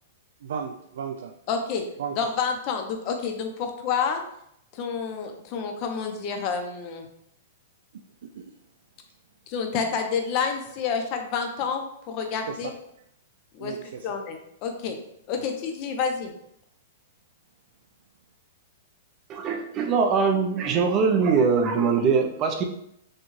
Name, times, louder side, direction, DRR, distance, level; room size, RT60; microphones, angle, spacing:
voice 1, 0.4-1.3 2.0-2.3 8.2-8.5 12.5-12.7 13.6-14.1 15.4-15.5, right 7 dB, 75° right, 5 dB, 0.4 m, -35 dB
voice 2, 1.5-1.8 2.2-4.2 4.7-7.1 9.5-12.7 13.5-13.7 14.0-15.0 15.3-16.3, left 6 dB, 35° left, 5 dB, 0.7 m, -29 dB
voice 3, 19.3-22.6, right 5 dB, 25° right, 3 dB, 0.5 m, -22 dB
6.4 x 2.3 x 3.1 m, 0.74 s
hypercardioid pair, 165°, 0 cm